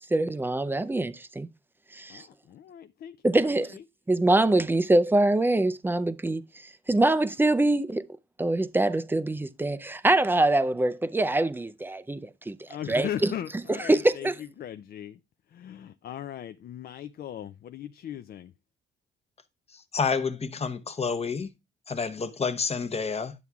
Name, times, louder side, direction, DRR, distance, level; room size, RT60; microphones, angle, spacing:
voice 1, 0.1-1.5 1.9-2.2 3.2-3.8 4.1-6.4 6.9-8.1 8.4-12.6 12.9-13.3 13.7-14.3, right 2 dB, 10° right, 0.4 m, -24 dB
voice 2, 2.1-3.2 3.4-3.8 12.7-15.2 15.5-18.5, left 10 dB, 50° left, 0.4 m, -38 dB
voice 3, 19.7-21.5 21.9-23.3, left 5 dB, 30° left, 0.8 m, -29 dB
11.0 x 7.1 x 2.3 m
cardioid pair, 90°, 20 cm